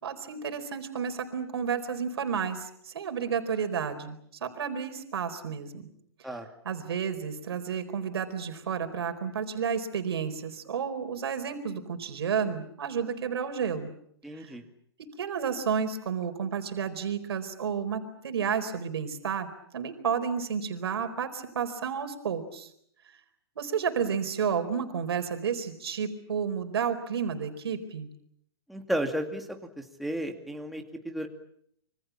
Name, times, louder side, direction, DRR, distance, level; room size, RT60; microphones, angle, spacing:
voice 1, 0.0-5.9 6.2-6.4 6.6-13.9 14.3-14.5 15.0-19.5 19.7-22.7 23.6-28.1, right 7 dB, 75° right, 7 dB, 4.5 m, -31 dB
voice 2, 14.2-14.6 28.7-29.5 29.8-31.3, right 1 dB, ahead, 3 dB, 2.4 m, -33 dB
27.0 x 25.0 x 7.3 m, 0.70 s
hypercardioid pair, 155°, 13 cm